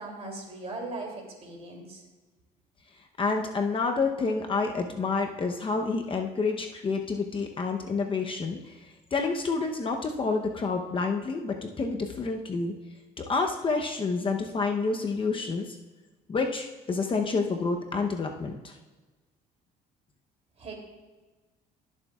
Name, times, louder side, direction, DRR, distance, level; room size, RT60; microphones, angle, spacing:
voice 1, 0.0-2.0 20.6-20.7, right 2 dB, 40° right, 1 dB, 2.7 m, -39 dB
voice 2, 3.2-12.7 13.2-15.8 16.3-18.7, left 4 dB, 30° left, 3 dB, 0.8 m, -29 dB
19.0 x 7.2 x 2.4 m, 1.3 s
cardioid pair, 110°, 17 cm